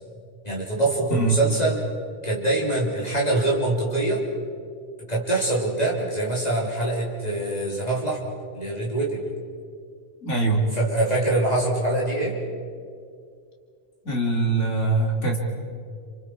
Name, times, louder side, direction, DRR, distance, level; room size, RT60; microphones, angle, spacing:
voice 1, 0.4-1.8 2.2-4.2 5.1-8.2 8.5-9.2 10.7-12.4, right 2 dB, 35° left, -4 dB, 3.9 m, -24 dB
voice 2, 10.2-10.7 14.0-15.4, right 3 dB, 80° left, 0 dB, 3.5 m, -23 dB
29.5 x 26.5 x 4.8 m, 2.2 s
omnidirectional pair, 1.2 m